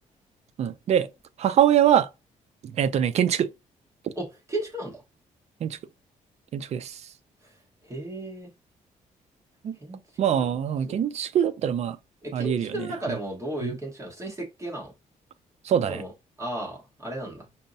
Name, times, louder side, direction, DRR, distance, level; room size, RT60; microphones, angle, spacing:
voice 1, 0.6-1.1 1.4-2.1 2.6-3.5 5.6-5.8 6.5-7.0 9.6-9.8 10.2-12.0 12.3-12.9 13.6-13.8 15.6-16.0, right 9 dB, 50° right, 0.4 m, -23 dB
voice 2, 4.1-5.0 7.4-7.5 7.8-8.5 9.8-10.0 10.3-10.5 10.9-11.0 12.2-14.9 15.7-16.1 16.4-17.5, right 1 dB, 20° right, 1.2 m, -34 dB
5.4 x 2.0 x 2.6 m
cardioid pair, 140°, 14 cm